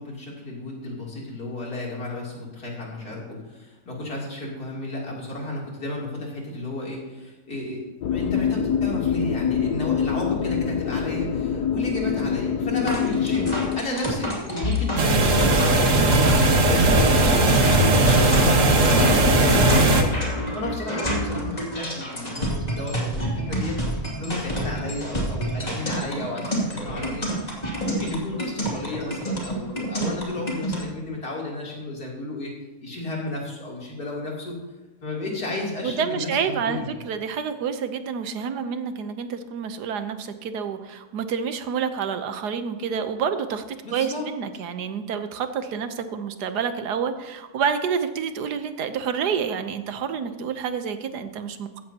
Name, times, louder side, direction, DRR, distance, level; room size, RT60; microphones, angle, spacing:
voice 1, 0.0-7.8 8.1-16.3 16.7-20.1 20.5-23.8 24.2-27.3 27.8-32.5 32.8-34.6 35.0-37.0 43.8-44.3, left 2 dB, 70° left, -3 dB, 3.7 m, -32 dB
sound 1, 8.0-13.8, left 7 dB, 85° left, 1.3 m, -25 dB
sound 2, 12.9-30.8, equal, 25° left, 2.6 m, -28 dB
sound 3, 15.0-20.0, right 2 dB, 55° right, 1.6 m, -18 dB
voice 2, 35.8-43.6 43.9-51.8, right 7 dB, 85° right, 9 dB, 1.5 m, -28 dB
15.5 x 13.5 x 2.9 m, 1.2 s
omnidirectional pair, 1.7 m